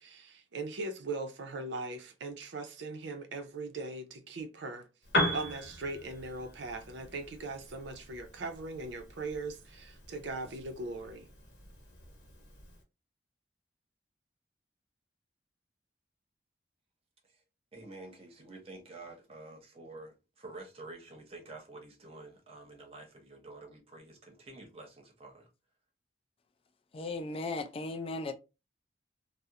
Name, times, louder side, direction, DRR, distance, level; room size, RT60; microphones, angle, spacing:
voice 1, 0.0-4.9 5.3-11.3, right 3 dB, 80° right, 0.5 m, -40 dB
Piano, 5.0-12.8, equal, 65° left, 0.9 m, -38 dB
voice 2, 17.7-25.5, right 2 dB, 35° right, 0.7 m, -49 dB
voice 3, 26.9-28.3, left 2 dB, 30° left, 0.3 m, -36 dB
2.4 x 2.0 x 2.8 m
head